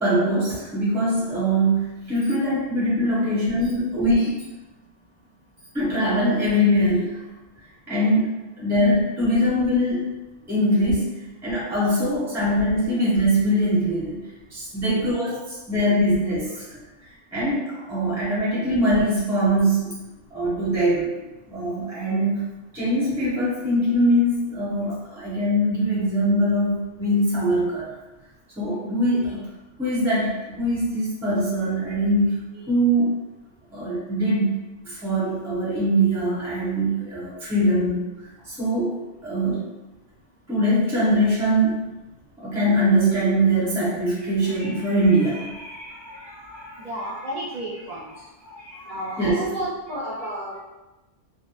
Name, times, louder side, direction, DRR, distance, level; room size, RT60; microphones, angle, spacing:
voice 1, 0.0-4.4 5.7-7.2 7.9-10.0 10.5-16.8 17.3-20.0 20.3-21.1 21.5-22.5 22.7-28.0 28.6-29.5 29.8-33.1 33.7-34.6 34.8-38.1 38.5-39.0 39.2-39.6 40.5-41.8 42.4-46.9 48.4-48.9 49.1-49.5, equal, ahead, -8 dB, 0.6 m, -22 dB
voice 2, 46.8-48.1 48.9-50.6, right 1 dB, 50° right, -7 dB, 0.6 m, -31 dB
2.4 x 2.0 x 2.8 m, 1.0 s
omnidirectional pair, 1.2 m